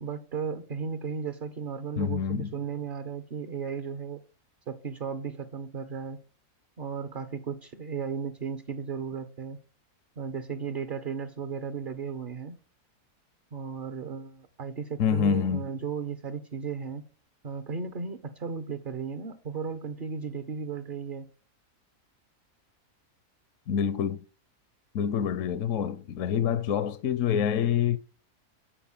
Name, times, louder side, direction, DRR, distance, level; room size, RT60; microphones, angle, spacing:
voice 1, 0.0-4.2 4.7-6.2 6.8-9.6 10.2-12.6 13.5-17.0 17.4-21.3, right 6 dB, 45° right, 0.7 m, -35 dB
voice 2, 2.0-2.5 15.0-15.6 23.7-24.2 24.9-28.0, left 8 dB, 65° left, 0.9 m, -26 dB
8.7 x 4.4 x 7.2 m
omnidirectional pair, 1.7 m